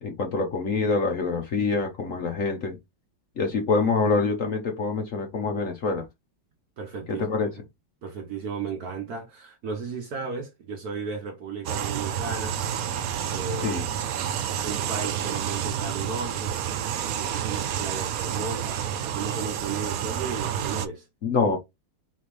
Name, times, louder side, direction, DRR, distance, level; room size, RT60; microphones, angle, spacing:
voice 1, 0.0-2.8 3.4-6.0 7.1-7.5 13.6-13.8 21.2-21.6, left 4 dB, 55° left, 1.0 m, -25 dB
voice 2, 6.8-7.6 8.0-12.7 13.3-13.8 14.6-16.6 17.2-21.1, right 5 dB, 55° right, 1.3 m, -35 dB
sound 1, 11.6-20.9, right 9 dB, 80° right, 0.8 m, -29 dB
4.3 x 3.9 x 3.2 m
omnidirectional pair, 2.1 m